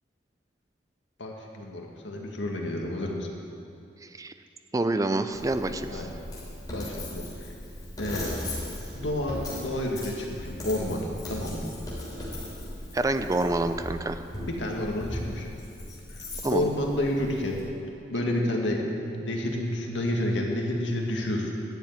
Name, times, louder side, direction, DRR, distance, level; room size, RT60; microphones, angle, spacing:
voice 1, 1.2-3.3 5.9-6.1 6.7-7.5 8.0-8.4 8.9-11.7 14.5-15.5 16.1-16.2 16.5-17.7 18.1-21.5, left 1 dB, 80° left, 0 dB, 1.9 m, -30 dB
voice 2, 4.0-4.3 4.7-6.1 12.9-14.2 16.4-16.7, right 2 dB, 20° right, 9 dB, 0.4 m, -27 dB
Coin (dropping), 5.3-17.6, left 1 dB, 20° left, 3.3 m, -38 dB
11.5 x 7.2 x 9.1 m, 2.6 s
head